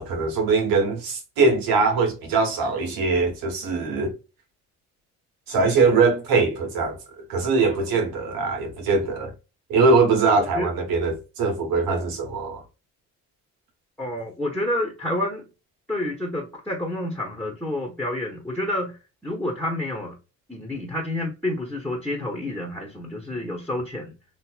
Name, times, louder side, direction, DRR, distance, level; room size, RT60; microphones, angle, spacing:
voice 1, 0.0-4.1 5.5-9.3 9.7-12.6, right 4 dB, 85° right, 1.2 m, -22 dB
voice 2, 10.3-10.7 14.0-15.4 15.9-19.0 19.2-20.1 20.5-24.1, left 1 dB, 5° left, 1.1 m, -29 dB
3.2 x 2.6 x 2.3 m
supercardioid pair, 70°, 35 cm